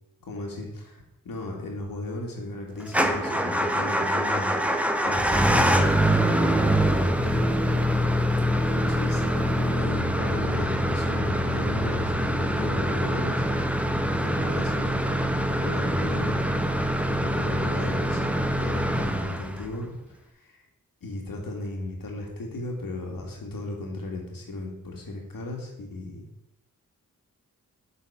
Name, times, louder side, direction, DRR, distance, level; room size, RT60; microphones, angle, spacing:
voice 1, 0.2-6.4 7.2-7.9 8.7-13.5 14.2-15.2 15.6-16.6 17.2-20.6 21.0-26.3, left 2 dB, 75° left, 1 dB, 2.3 m, -35 dB
Motor vehicle (road) / Engine starting / Idling, 2.9-19.8, equal, 5° right, 0.8 m, -24 dB
8.1 x 4.2 x 7.0 m, 0.86 s
cardioid pair, 70°, 34 cm